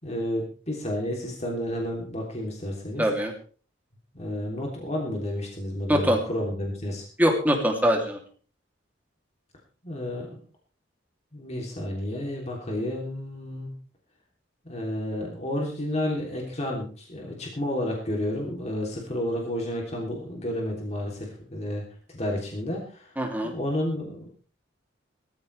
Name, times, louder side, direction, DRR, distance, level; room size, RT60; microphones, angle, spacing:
voice 1, 0.0-3.0 4.1-7.0 9.8-10.4 11.3-13.7 14.6-21.8 22.1-23.1 23.4-24.5, left 1 dB, 35° left, -1 dB, 3.2 m, -31 dB
voice 2, 3.0-3.3 5.9-6.2 7.2-8.2 23.2-23.5, equal, 10° right, 0 dB, 2.9 m, -23 dB
20.0 x 13.5 x 3.4 m, 0.40 s
head